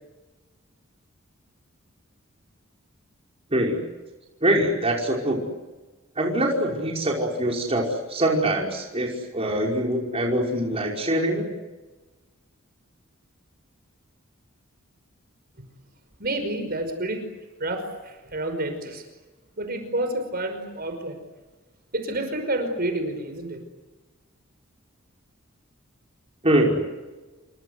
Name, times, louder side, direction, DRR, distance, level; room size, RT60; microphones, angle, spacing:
voice 1, 4.4-5.4 6.2-7.8 8.1-11.5 26.4-26.8, right 1 dB, 30° right, -1 dB, 5.5 m, -23 dB
voice 2, 16.2-17.3 17.6-19.0 19.6-21.2 21.9-23.6, right 1 dB, 50° right, 7 dB, 5.4 m, -29 dB
28.5 x 24.5 x 8.2 m, 1.2 s
head